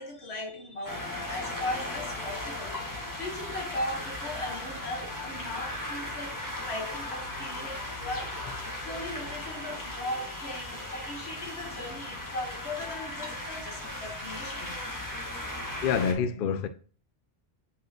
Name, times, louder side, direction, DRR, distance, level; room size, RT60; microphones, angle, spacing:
voice 1, 0.0-8.4 8.8-14.8, left 1 dB, 85° left, 1.6 m, -38 dB
sound 1, 0.8-16.1, left 1 dB, 20° left, 1.5 m, -37 dB
voice 2, 15.8-16.7, left 7 dB, 65° left, 0.7 m, -26 dB
8.0 x 5.0 x 2.9 m
omnidirectional pair, 1.1 m